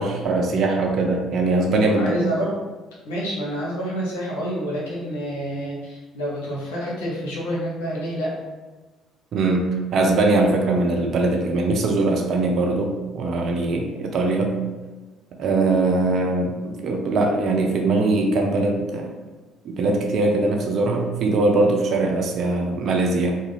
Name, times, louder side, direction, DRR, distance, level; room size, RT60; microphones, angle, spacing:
voice 1, 0.0-2.2 9.3-14.6 15.4-19.1 19.6-23.3, right 2 dB, 60° right, 2 dB, 0.4 m, -21 dB
voice 2, 1.9-2.5 3.0-8.3, equal, 80° left, -6 dB, 0.8 m, -28 dB
2.3 x 2.2 x 3.2 m, 1.2 s
hypercardioid pair, 60°, 0 cm